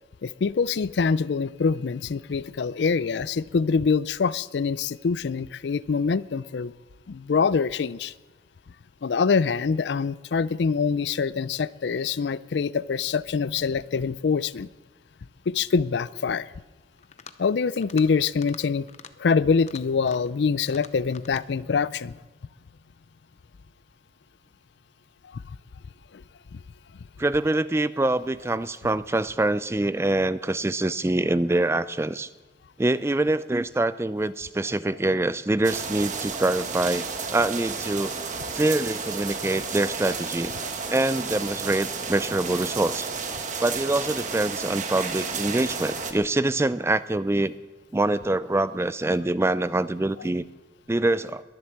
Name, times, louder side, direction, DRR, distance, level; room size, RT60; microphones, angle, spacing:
voice 1, 0.2-6.7 7.1-8.1 9.0-14.7 15.5-16.5 17.4-18.9 19.2-22.1 25.3-25.4 26.1-26.2 26.5-26.6 38.0-38.1 40.6-40.7 43.5-43.6, left 5 dB, 75° left, 18 dB, 0.4 m, -25 dB
sound 1, 17.0-17.4 17.8-18.1 18.4-18.6 18.9-19.1 19.5-20.3 20.7-21.5, left 6 dB, 40° left, 0.7 m, -46 dB
voice 2, 27.2-32.3 32.8-38.1 38.5-40.5 40.9-43.1 43.6-47.5 47.9-50.4 50.9-51.4, right 2 dB, 15° right, 15 dB, 0.4 m, -25 dB
sound 2, 35.6-46.1, right 5 dB, 45° right, 1.3 m, -32 dB
22.0 x 7.8 x 7.2 m, 1.2 s
head